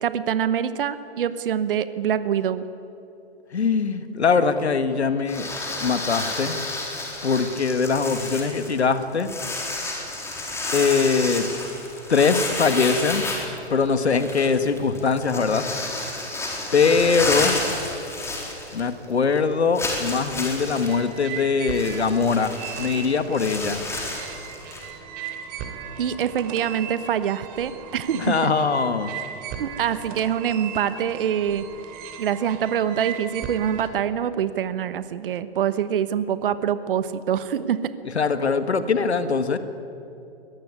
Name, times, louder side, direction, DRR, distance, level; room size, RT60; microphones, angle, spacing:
voice 1, 0.0-2.6 26.0-28.5 29.6-31.6 32.2-37.9, right 9 dB, 55° right, 13 dB, 1.2 m, -25 dB
voice 2, 3.5-6.7 7.2-9.3 10.7-11.5 12.1-13.2 13.7-15.6 16.7-17.6 18.7-23.8 28.2-29.1 38.2-39.6, left 5 dB, 75° left, 10 dB, 1.8 m, -22 dB
sound 1, 5.3-19.0 19.3-19.4 19.7-24.9, left 2 dB, 10° left, 4.1 m, -31 dB
sound 2, 20.7-33.9, right 8 dB, 25° right, 2.9 m, -37 dB
23.0 x 19.0 x 9.7 m, 2.9 s
figure-of-eight pair, 125°, 33 cm